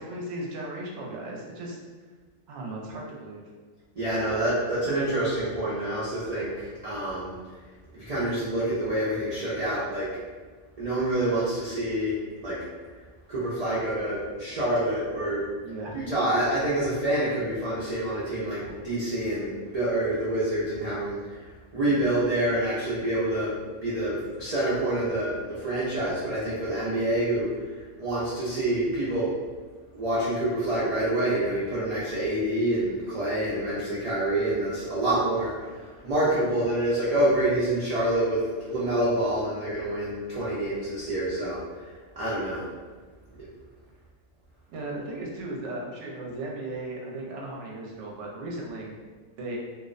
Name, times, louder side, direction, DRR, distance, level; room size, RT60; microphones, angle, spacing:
voice 1, 0.0-1.8 2.5-3.4 15.6-16.0 44.7-48.9 49.4-49.6, right 2 dB, 70° right, -2 dB, 0.8 m, -36 dB
voice 2, 4.0-7.3 7.9-10.1 10.8-12.2 12.4-12.6 13.3-15.4 15.9-21.2 21.7-23.6 23.8-27.5 28.0-29.3 29.9-41.6 42.2-42.6, right 1 dB, 85° right, -9 dB, 0.3 m, -27 dB
2.5 x 2.0 x 2.4 m, 1.4 s
omnidirectional pair, 1.4 m